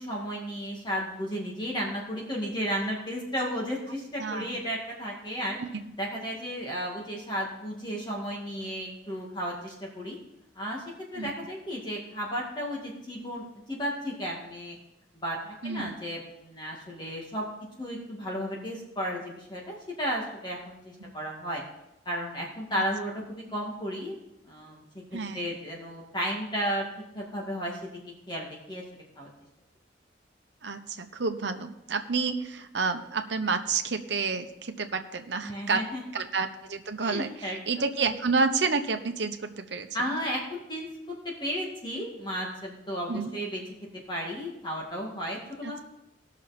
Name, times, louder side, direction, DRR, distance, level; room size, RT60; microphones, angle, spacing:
voice 1, 0.0-5.6 6.0-10.2 10.6-10.8 11.1-14.8 15.1-17.5 17.8-21.6 22.1-24.2 24.4-24.8 25.3-26.9 27.2-27.9 28.3-28.8 29.2-29.3 35.4-36.0 37.0-37.6 39.9-43.6 44.1-45.8, equal, 25° left, -2 dB, 2.1 m, -33 dB
voice 2, 4.2-4.6 5.6-5.7 11.2-11.3 15.6-15.9 21.0-21.1 25.1-25.5 30.6-35.8 36.1-39.9 43.1-43.3 45.6-45.8, right 4 dB, 70° right, 7 dB, 1.0 m, -30 dB
18.5 x 6.3 x 4.3 m, 0.87 s
head